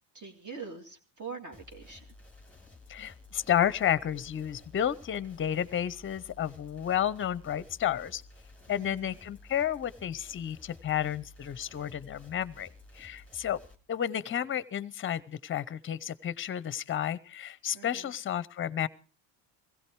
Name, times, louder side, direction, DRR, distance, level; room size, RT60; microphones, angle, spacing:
voice 1, 0.1-2.1 8.7-9.2 17.7-18.1, right 5 dB, 40° right, 3 dB, 2.5 m, -44 dB
sound 1, 1.5-13.8, left 2 dB, 5° left, 2.1 m, -54 dB
voice 2, 2.9-8.2 8.7-12.7 12.9-13.6 13.9-18.9, left 10 dB, 30° left, 20 dB, 0.7 m, -31 dB
16.5 x 16.0 x 4.6 m, 0.37 s
cardioid pair, 95°, 44 cm